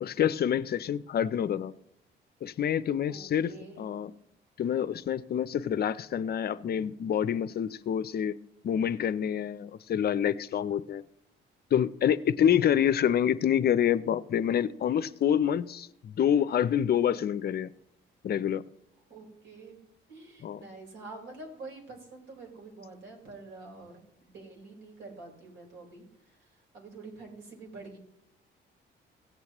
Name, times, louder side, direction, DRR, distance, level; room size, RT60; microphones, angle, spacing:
voice 1, 0.0-1.7 2.4-3.5 3.8-4.1 4.6-8.3 8.6-11.0 11.7-17.7 18.2-18.6 20.4-20.6, left 9 dB, 55° left, 0.5 m, -27 dB
voice 2, 3.1-3.9 19.1-19.8 20.1-28.0, right 3 dB, 75° right, 4.2 m, -47 dB
17.0 x 8.1 x 3.0 m
cardioid pair, 90°, 20 cm